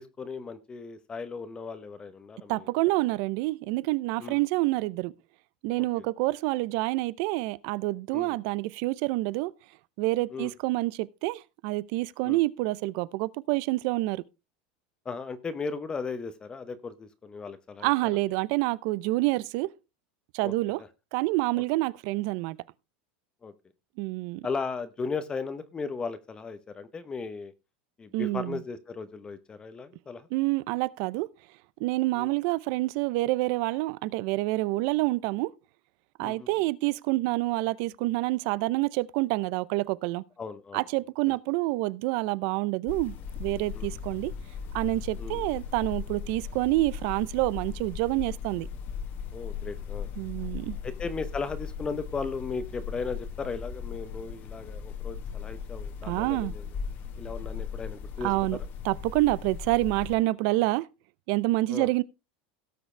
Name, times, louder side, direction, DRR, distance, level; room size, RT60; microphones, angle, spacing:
voice 1, 0.0-2.7 4.2-4.4 5.8-6.0 8.1-8.3 10.3-10.5 12.2-12.4 15.0-17.9 20.4-20.5 23.4-23.5 24.4-27.5 28.0-30.3 32.1-32.3 36.2-36.5 40.4-40.8 41.3-41.4 43.7-43.9 45.2-45.5 49.3-50.1 50.8-56.6 57.2-58.3 61.7-61.9, left 4 dB, 20° left, 0.9 m, -36 dB
voice 2, 2.5-5.1 5.6-9.5 10.0-14.2 17.8-19.7 20.3-20.8 21.1-22.6 24.0-24.5 28.1-28.6 30.3-31.3 31.8-35.5 36.2-40.2 40.7-43.1 43.4-44.3 44.7-48.7 50.2-50.8 56.0-56.5 58.2-58.6 58.8-60.9 61.3-62.0, right 20 dB, 60° right, 0.6 m, -27 dB
sound 1, 42.9-60.2, left 7 dB, 40° left, 1.6 m, -38 dB
17.5 x 6.5 x 3.3 m
supercardioid pair, 145°, 5 cm